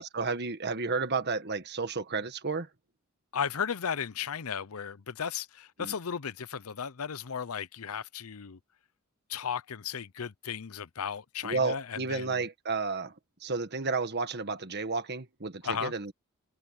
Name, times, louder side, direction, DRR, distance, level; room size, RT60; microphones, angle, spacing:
voice 1, 0.0-2.7 5.8-5.9 11.4-13.1 13.4-16.1, right 4 dB, 50° right, 1.6 m, -32 dB
voice 2, 3.3-8.6 9.3-12.4 15.6-15.9, left 7 dB, 90° left, 0.7 m, -35 dB
head